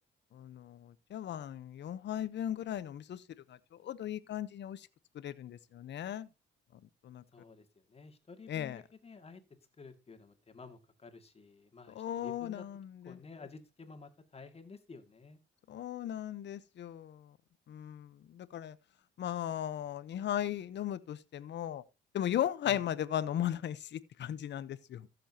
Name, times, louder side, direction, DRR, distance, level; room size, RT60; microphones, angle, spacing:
voice 1, 0.3-3.2 3.5-4.9 5.1-6.3 6.7-7.2 8.5-8.8 11.9-13.2 15.7-17.4 17.7-18.8 19.2-21.8 22.1-25.1, left 11 dB, 65° left, 0.9 m, -37 dB
voice 2, 7.3-9.4 9.8-12.6 13.0-15.4 22.6-22.8, left 4 dB, 30° left, 2.2 m, -52 dB
15.0 x 7.1 x 2.9 m
cardioid pair, 90°, 20 cm